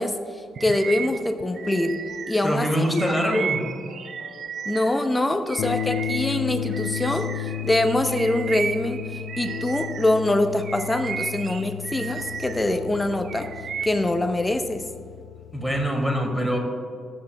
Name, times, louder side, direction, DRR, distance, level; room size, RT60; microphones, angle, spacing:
voice 1, 0.0-2.0 2.3-2.9 3.2-3.4 4.6-13.5 13.8-14.9, left 1 dB, 15° left, 8 dB, 0.9 m, -24 dB
Bird vocalization bird call bird song, 0.6-5.1 5.5-10.2 10.6-12.7 13.1-14.1, right 7 dB, 55° right, 0.4 m, -34 dB
sound 1, 1.0-15.9, left 12 dB, 65° left, 0.3 m, -34 dB
voice 2, 2.4-3.6 15.5-16.6, equal, ahead, 1 dB, 2.6 m, -24 dB
14.5 x 9.1 x 2.4 m, 2.1 s
figure-of-eight pair, 45°, 0 cm